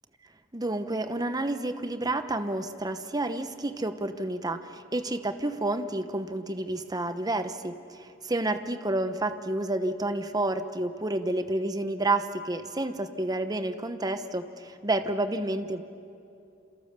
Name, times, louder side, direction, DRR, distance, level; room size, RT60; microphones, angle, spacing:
voice 1, 0.5-15.8, right 2 dB, 20° right, 9 dB, 1.0 m, -30 dB
28.5 x 27.0 x 6.8 m, 2.7 s
head